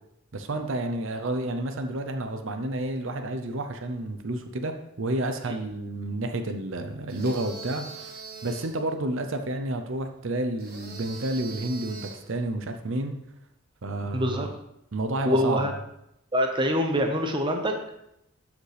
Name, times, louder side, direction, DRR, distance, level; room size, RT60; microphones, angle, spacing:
voice 1, 0.3-13.2 13.8-14.5 14.9-15.7, right 1 dB, 60° right, 7 dB, 0.7 m, -30 dB
sound 1, 7.1-8.8 10.6-12.3, right 4 dB, 45° right, 1.6 m, -42 dB
voice 2, 14.1-14.5 15.3-15.7 16.3-17.9, equal, 20° right, 4 dB, 0.8 m, -25 dB
13.0 x 5.1 x 3.4 m, 0.80 s
head